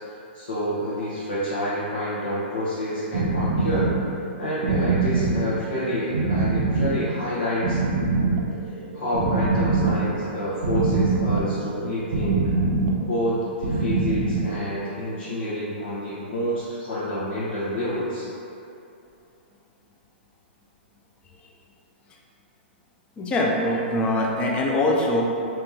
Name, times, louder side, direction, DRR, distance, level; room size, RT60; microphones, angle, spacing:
voice 1, 0.3-3.9 4.4-7.8 8.9-12.5 13.0-18.3, equal, 80° left, -11 dB, 1.0 m, -28 dB
sound 1, 3.1-14.9, right 3 dB, 80° right, 0.5 m, -24 dB
voice 2, 23.2-25.2, left 1 dB, 15° left, -1 dB, 0.4 m, -23 dB
3.0 x 2.9 x 3.5 m, 2.7 s
hypercardioid pair, 145°, 6 cm